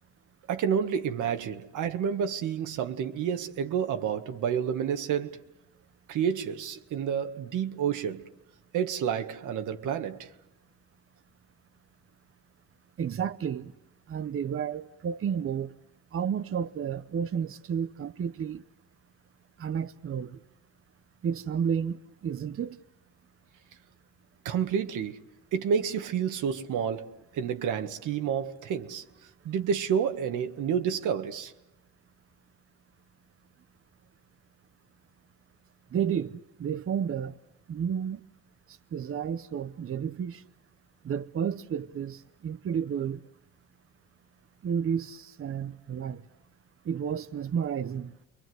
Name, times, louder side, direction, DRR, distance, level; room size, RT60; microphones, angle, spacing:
voice 1, 0.5-5.4 6.1-8.3 8.7-10.3 24.5-25.2 25.5-29.0 29.4-31.5, right 7 dB, 80° right, 1.7 m, -29 dB
voice 2, 13.0-13.7 14.1-15.7 16.1-18.6 19.6-20.4 21.2-22.0 22.2-22.8 35.9-36.3 36.6-37.3 37.7-38.2 38.9-40.4 41.0-43.2 44.6-46.2 46.9-48.1, right 8 dB, 45° right, 0.9 m, -31 dB
29.5 x 23.0 x 7.9 m
cardioid pair, 90°, 30 cm